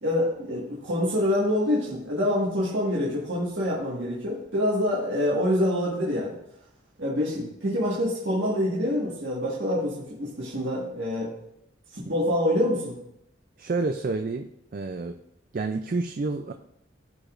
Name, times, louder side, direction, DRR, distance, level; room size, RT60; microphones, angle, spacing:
voice 1, 0.0-6.3 7.0-11.3 11.9-13.0, left 1 dB, 65° right, -6 dB, 1.7 m, -26 dB
voice 2, 13.6-14.5 14.7-15.2 15.5-16.5, right 3 dB, 45° right, 6 dB, 0.4 m, -29 dB
14.5 x 4.9 x 2.5 m, 0.80 s
head